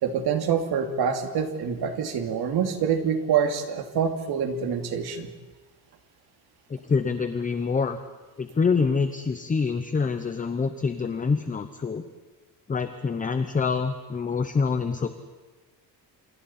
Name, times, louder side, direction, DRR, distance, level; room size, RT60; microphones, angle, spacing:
voice 1, 0.0-5.3, right 7 dB, 75° right, 5 dB, 2.5 m, -26 dB
voice 2, 6.7-8.0 8.4-12.0 12.7-15.1, left 5 dB, 20° left, 9 dB, 0.8 m, -26 dB
28.5 x 28.0 x 4.3 m, 1.3 s
cardioid pair, 170°, 39 cm